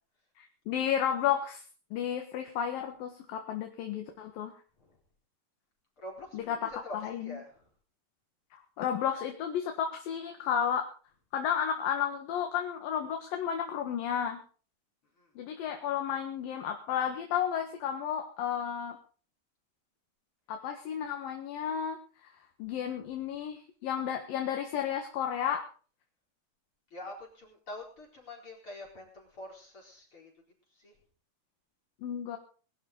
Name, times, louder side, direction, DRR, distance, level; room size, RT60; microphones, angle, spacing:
voice 1, 0.4-1.6 1.9-4.5 6.3-7.4 8.8-10.9 11.3-14.4 15.4-19.0 20.5-22.3 22.6-25.6 32.0-32.4, left 8 dB, 65° left, 4 dB, 3.1 m, -32 dB
voice 2, 6.0-7.0 7.2-7.7 15.2-15.3 26.9-30.3 30.8-30.9, left 2 dB, 30° left, -1 dB, 4.9 m, -45 dB
22.0 x 11.5 x 4.0 m, 0.39 s
omnidirectional pair, 4.7 m